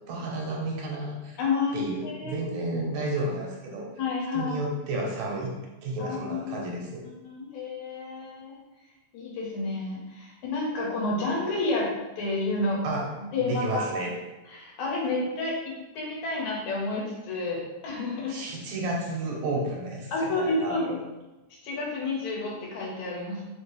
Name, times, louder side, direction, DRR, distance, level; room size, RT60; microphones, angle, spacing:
voice 1, 0.1-1.4 1.7-3.9 4.3-5.5 5.8-7.0 12.8-14.2 18.3-20.9, right 2 dB, 80° right, -1 dB, 2.2 m, -32 dB
voice 2, 1.4-2.4 4.0-4.6 6.0-6.5 7.2-8.6 9.1-11.9 12.2-12.8 13.2-13.9 14.5-18.4 20.1-21.0 21.6-23.4, left 3 dB, 80° left, -3 dB, 2.4 m, -30 dB
5.2 x 2.9 x 3.1 m, 1.1 s
omnidirectional pair, 3.4 m